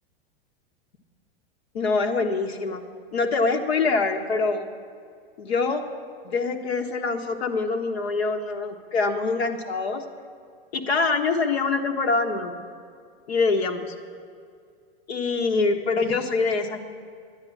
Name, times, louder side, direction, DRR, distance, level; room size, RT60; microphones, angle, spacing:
voice 1, 1.7-2.8 3.1-4.7 5.4-5.8 6.2-10.0 10.7-12.6 13.3-13.9 15.1-16.9, left 4 dB, 85° left, 5 dB, 1.3 m, -24 dB
10.5 x 9.8 x 8.4 m, 2.2 s
hypercardioid pair, 115°, 31 cm